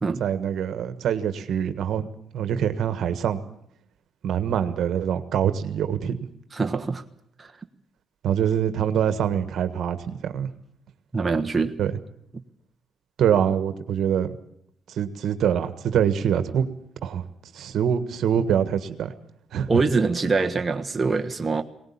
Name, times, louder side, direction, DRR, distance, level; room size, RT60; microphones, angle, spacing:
voice 1, 0.2-2.1 2.3-3.4 4.2-6.2 8.2-10.5 11.8-11.9 13.2-14.4 14.9-16.7 17.0-17.3 17.5-19.1 19.5-19.8, right 9 dB, 70° right, 10 dB, 1.5 m, -24 dB
voice 2, 6.5-7.0 7.4-7.5 11.1-11.7 19.7-21.6, right 4 dB, 25° right, 5 dB, 1.3 m, -24 dB
19.5 x 19.0 x 8.7 m, 0.70 s
cardioid pair, 90°, 0 cm